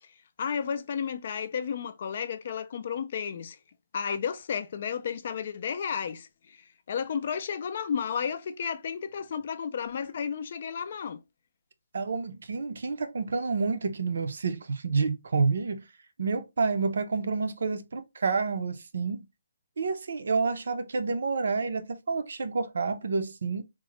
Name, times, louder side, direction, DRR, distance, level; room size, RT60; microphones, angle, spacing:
voice 1, 0.4-3.6 3.9-11.2, left 7 dB, 35° left, 0.3 m, -32 dB
voice 2, 11.9-15.8 16.2-19.2 19.8-23.6, right 4 dB, 60° right, 0.5 m, -29 dB
3.6 x 2.0 x 3.0 m
hypercardioid pair, 175°, 0 cm